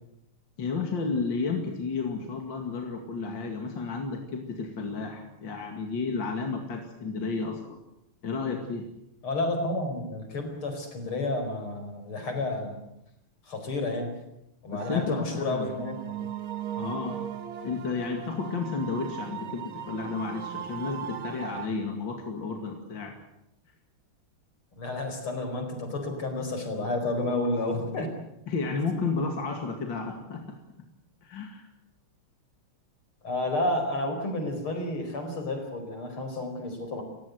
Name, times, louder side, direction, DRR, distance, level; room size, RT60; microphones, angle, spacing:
voice 1, 0.6-7.8 8.2-8.9 14.7-15.7 16.8-17.2 17.6-23.2 28.5-30.6 31.2-31.7, left 4 dB, 60° left, 3 dB, 3.0 m, -32 dB
voice 2, 9.2-12.8 13.5-14.2 14.6-16.3 24.8-28.2 33.2-37.0, left 2 dB, 80° left, 6 dB, 5.4 m, -31 dB
sound 1, 14.8-21.7, right 10 dB, 70° right, 2.1 m, -38 dB
30.0 x 16.0 x 8.2 m, 0.85 s
omnidirectional pair, 2.3 m